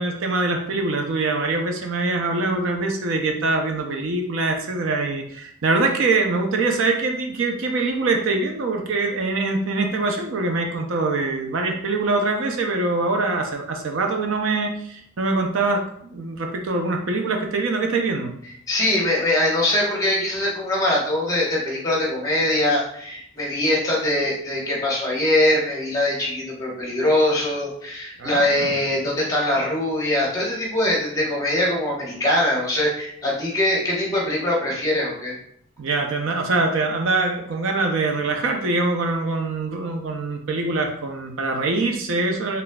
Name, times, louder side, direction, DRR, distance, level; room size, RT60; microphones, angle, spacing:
voice 1, 0.0-18.3 28.2-28.7 35.8-42.6, right 3 dB, 60° right, 3 dB, 0.5 m, -24 dB
voice 2, 18.7-35.3, left 1 dB, 15° left, -3 dB, 1.0 m, -22 dB
4.0 x 3.3 x 2.2 m, 0.68 s
head